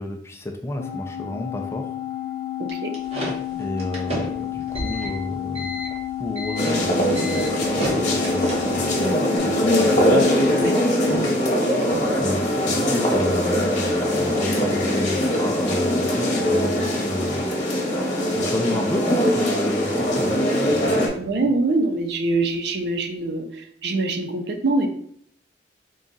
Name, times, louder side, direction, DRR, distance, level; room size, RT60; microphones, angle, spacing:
voice 1, 0.0-1.9 3.5-9.1 9.4-10.2 12.2-17.5 17.8-17.9 18.3-21.1, left 1 dB, 15° left, 2 dB, 0.4 m, -31 dB
Organ, 0.8-12.0, left 13 dB, 55° left, 0.6 m, -31 dB
voice 2, 2.6-2.9 10.6-10.7 11.0-11.1 21.2-24.9, right 2 dB, 60° right, 5 dB, 0.5 m, -24 dB
sound 1, 2.7-9.0, equal, 35° right, 0.9 m, -32 dB
sound 2, 6.6-21.1, equal, 40° left, 1.0 m, -22 dB
3.9 x 2.4 x 3.8 m, 0.62 s
head